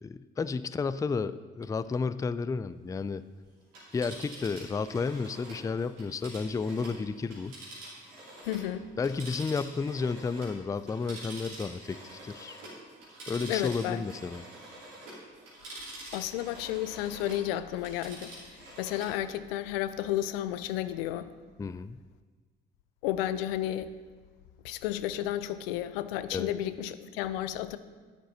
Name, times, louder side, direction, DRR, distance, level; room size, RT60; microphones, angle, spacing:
voice 1, 0.0-3.2 3.9-7.6 9.0-12.6 13.3-14.4 21.6-22.0 26.3-26.5, left 4 dB, 10° left, 14 dB, 0.3 m, -32 dB
Telephone, 3.6-8.7 9.0-17.5 17.8-19.2 19.5-19.6, right 1 dB, 85° right, 3.1 m, -46 dB
voice 2, 8.4-8.9 13.5-14.0 16.1-21.3 23.0-23.9 24.6-27.8, left 12 dB, 80° left, 13 dB, 0.5 m, -32 dB
10.0 x 8.0 x 4.0 m, 1.5 s
hypercardioid pair, 50°, 29 cm